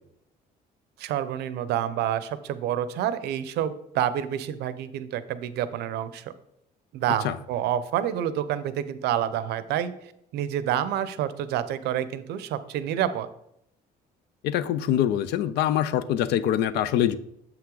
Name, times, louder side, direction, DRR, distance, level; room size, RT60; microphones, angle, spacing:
voice 1, 1.0-6.3 6.9-9.9 10.3-13.3, right 10 dB, 80° right, 0.6 m, -28 dB
voice 2, 14.4-17.2, left 11 dB, 80° left, 0.5 m, -24 dB
7.2 x 5.8 x 3.8 m
cardioid pair, 110°, 17 cm